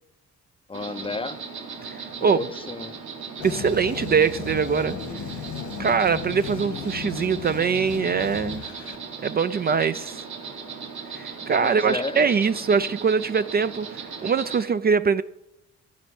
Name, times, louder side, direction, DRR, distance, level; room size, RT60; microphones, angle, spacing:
voice 1, 0.7-1.4 2.2-3.0 11.6-12.3, left 3 dB, 20° left, 13 dB, 0.5 m, -32 dB
Insect, 0.7-14.6, right 5 dB, 70° right, 2.7 m, -38 dB
voice 2, 1.8-2.4 3.4-5.0 5.8-8.6 9.2-10.2 11.1-15.2, right 6 dB, 30° right, 13 dB, 0.4 m, -23 dB
sound 1, 3.4-9.0, left 6 dB, 85° left, 1.6 m, -35 dB
14.5 x 5.2 x 9.1 m, 0.91 s
cardioid pair, 90°, 30 cm